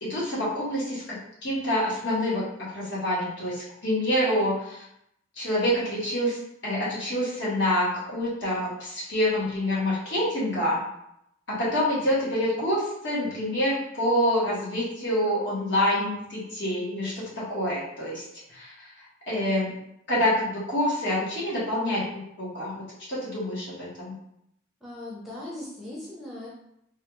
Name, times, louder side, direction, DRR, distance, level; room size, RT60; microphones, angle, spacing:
voice 1, 0.0-2.4 2.7-4.8 5.4-10.8 11.5-18.2 18.5-18.7 19.3-19.8 20.1-24.1, left 1 dB, 60° left, -7 dB, 1.2 m, -27 dB
voice 2, 24.8-26.5, left 1 dB, ahead, -7 dB, 0.6 m, -39 dB
3.1 x 2.4 x 3.0 m, 0.78 s
head